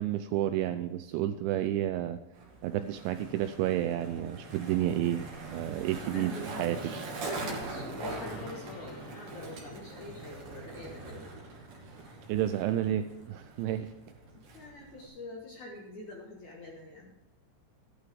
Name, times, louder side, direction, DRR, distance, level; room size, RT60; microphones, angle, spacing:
voice 1, 0.0-2.2 2.6-6.8 12.3-13.9, right 12 dB, 90° right, 10 dB, 2.6 m, -31 dB
Skateboard, 2.3-15.1, right 3 dB, 50° right, 3.6 m, -43 dB
voice 2, 5.9-6.9 7.3-11.3 14.3-17.1, left 2 dB, 70° left, -1 dB, 1.8 m, -45 dB
Gong, 7.7-15.2, left 2 dB, 40° left, 2.5 m, -53 dB
15.0 x 12.0 x 3.6 m, 0.99 s
omnidirectional pair, 6.0 m